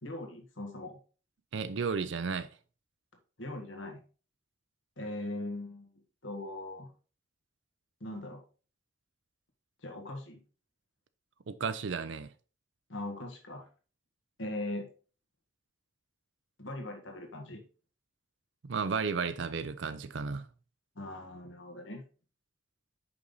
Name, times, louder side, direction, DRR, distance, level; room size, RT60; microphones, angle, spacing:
voice 1, 0.0-0.9 3.4-4.0 5.0-5.9 6.2-6.9 8.0-8.4 9.8-10.4 12.9-13.7 14.4-14.9 16.6-17.6 20.9-22.0, left 1 dB, 85° left, 1.6 m, -40 dB
voice 2, 1.5-2.5 11.5-12.3 18.6-20.5, right 5 dB, 75° right, 0.5 m, -33 dB
5.7 x 5.4 x 4.0 m
head